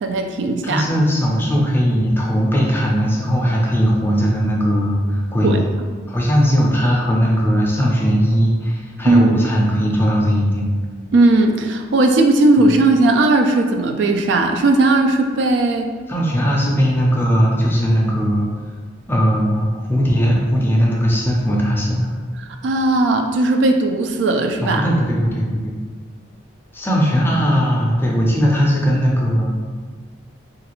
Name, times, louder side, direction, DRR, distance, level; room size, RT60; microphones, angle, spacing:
voice 1, 0.0-0.8 5.4-5.6 9.1-9.5 11.1-15.9 22.6-24.9, right 2 dB, 65° right, 4 dB, 0.3 m, -16 dB
voice 2, 0.6-5.6 6.1-10.7 16.1-18.5 19.1-22.1 24.6-25.8 26.7-29.6, equal, 10° left, -3 dB, 0.4 m, -18 dB
3.1 x 2.4 x 3.0 m, 1.5 s
head